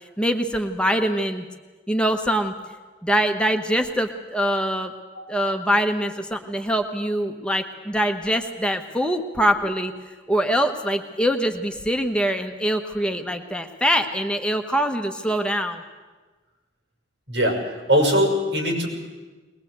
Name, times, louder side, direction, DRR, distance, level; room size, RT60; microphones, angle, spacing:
voice 1, 0.2-1.4 1.9-2.5 3.0-4.9 5.3-9.9 10.3-15.8, equal, 5° left, 5 dB, 1.1 m, -23 dB
voice 2, 17.3-17.6 17.9-18.9, equal, 85° right, 2 dB, 6.3 m, -20 dB
21.0 x 20.5 x 8.1 m, 1.3 s
head